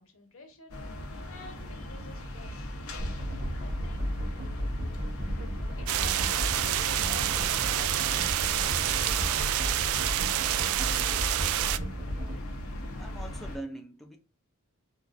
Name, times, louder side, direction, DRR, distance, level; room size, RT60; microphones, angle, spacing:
voice 1, 0.0-2.7 3.5-4.1 5.8-10.2, left 3 dB, 65° left, 1.1 m, -50 dB
sound 1, 0.7-13.6, left 1 dB, 90° left, 0.8 m, -39 dB
sound 2, 3.0-12.4, equal, 55° right, 0.9 m, -34 dB
sound 3, 5.9-11.8, right 12 dB, 70° right, 0.3 m, -28 dB
voice 2, 13.0-14.2, right 1 dB, ahead, 0.4 m, -42 dB
4.5 x 2.4 x 2.4 m
head